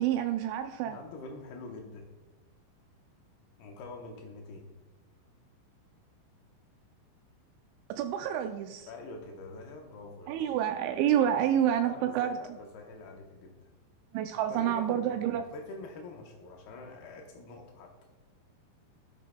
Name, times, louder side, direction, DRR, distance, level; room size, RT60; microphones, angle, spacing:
voice 1, 0.0-1.0 7.9-8.9 10.3-12.4 14.1-15.4, right 10 dB, 90° right, 6 dB, 2.6 m, -28 dB
voice 2, 0.9-2.1 3.6-4.7 8.9-10.6 11.2-13.7 14.4-17.9, left 3 dB, 90° left, 2 dB, 2.2 m, -46 dB
17.5 x 6.3 x 2.2 m, 1.2 s
omnidirectional pair, 5.7 m